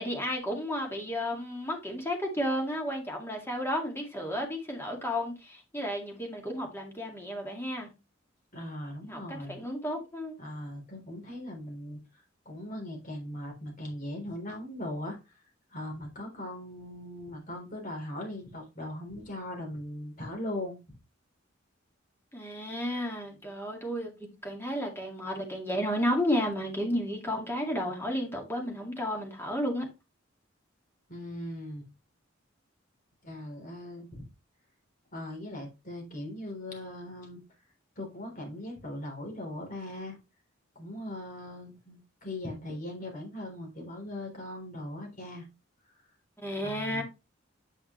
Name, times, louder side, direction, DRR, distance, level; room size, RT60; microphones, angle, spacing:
voice 1, 0.0-7.9 9.0-10.4 22.3-29.9 46.4-47.0, equal, 10° left, 2.1 m, -32 dB
voice 2, 8.5-9.6 10.4-12.0 12.5-15.2 15.7-20.8 31.1-31.9 33.2-34.3 35.1-37.4 38.0-40.2 40.8-45.5 46.6-47.0, left 1 dB, 40° left, 3.6 m, -39 dB
8.4 x 5.6 x 3.1 m
head